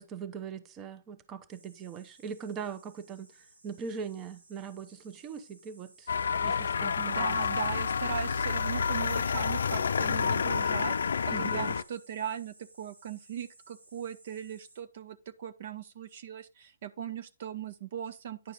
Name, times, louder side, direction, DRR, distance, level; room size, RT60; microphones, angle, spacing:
voice 1, 0.0-3.3 3.6-6.1 6.4-7.4 11.3-11.7, right 6 dB, 25° right, 0.8 m, -40 dB
sound 1, 1.5-14.8, right 2 dB, 85° right, 3.9 m, -59 dB
sound 2, 6.1-11.8, left 6 dB, 80° left, 0.4 m, -29 dB
voice 2, 7.0-18.5, right 9 dB, 55° right, 0.7 m, -39 dB
10.0 x 4.9 x 3.9 m
hypercardioid pair, 140°, 0 cm